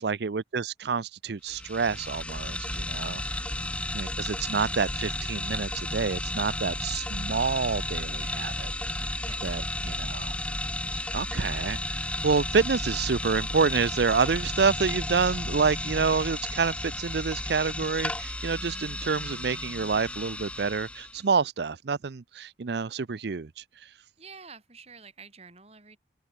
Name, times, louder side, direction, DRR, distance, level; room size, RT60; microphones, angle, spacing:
voice 1, 0.0-3.2 3.9-9.2 9.4-10.4 11.0-23.6, right 5 dB, 65° right, 0.5 m, -28 dB
sound 1, 1.5-21.2, left 1 dB, 5° left, 0.8 m, -33 dB
voice 2, 3.2-3.7 9.2-9.5 24.2-26.0, right 5 dB, 35° right, 5.0 m, -49 dB
head